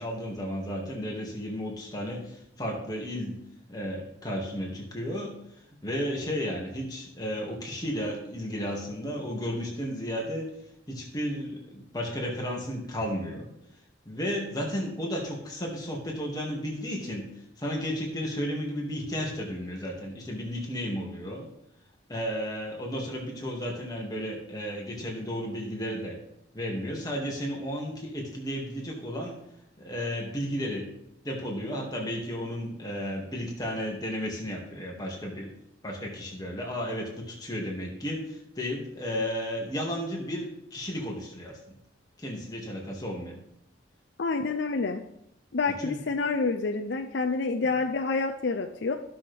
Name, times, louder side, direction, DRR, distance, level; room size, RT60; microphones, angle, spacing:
voice 1, 0.0-3.4 3.7-5.4 5.8-10.5 10.9-13.5 14.1-21.5 22.1-26.2 26.5-29.4 29.8-30.9 31.2-35.5 35.8-41.6 42.2-43.4 45.8-46.0, equal, 20° left, -2 dB, 2.1 m, -33 dB
voice 2, 44.2-45.0 45.5-48.9, left 4 dB, 60° left, 4 dB, 0.5 m, -28 dB
15.0 x 6.2 x 3.5 m, 0.77 s
head